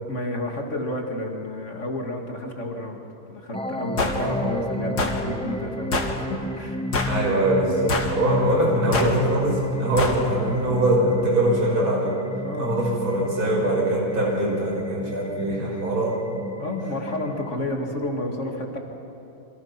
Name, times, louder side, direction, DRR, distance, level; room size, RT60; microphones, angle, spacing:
voice 1, 0.0-3.0 3.3-6.8 8.0-8.6 12.4-12.7 15.3-15.6 16.6-18.8, left 1 dB, 50° left, 1 dB, 2.5 m, -31 dB
sound 1, 3.5-17.5, left 1 dB, 5° left, 0.4 m, -33 dB
sound 2, 4.0-4.2 5.0-5.2 5.9-6.2 6.9-7.2 7.9-8.2 8.9-9.2 10.0-10.2, left 3 dB, 80° left, 2.5 m, -25 dB
voice 2, 7.0-12.2 12.6-16.2, right 1 dB, 65° right, -2 dB, 6.1 m, -22 dB
28.5 x 25.5 x 5.9 m, 2.9 s
omnidirectional pair, 1.7 m